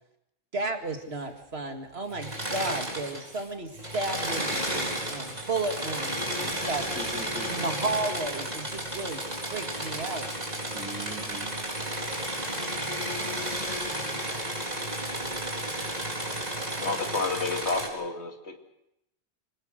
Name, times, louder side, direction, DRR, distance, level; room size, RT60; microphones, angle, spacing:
voice 1, 0.5-6.8 7.4-9.2 9.5-10.3, right 2 dB, 65° right, 5 dB, 2.3 m, -33 dB
Engine / Mechanisms, 2.1-3.4 3.7-17.9, right 1 dB, 35° right, 4.3 m, -32 dB
voice 2, 6.9-7.7 10.7-11.5, right 2 dB, 5° right, 2 dB, 2.7 m, -43 dB
voice 3, 16.8-18.6, left 3 dB, 80° left, 3 dB, 2.7 m, -30 dB
25.0 x 19.0 x 6.5 m, 0.82 s
omnidirectional pair, 1.1 m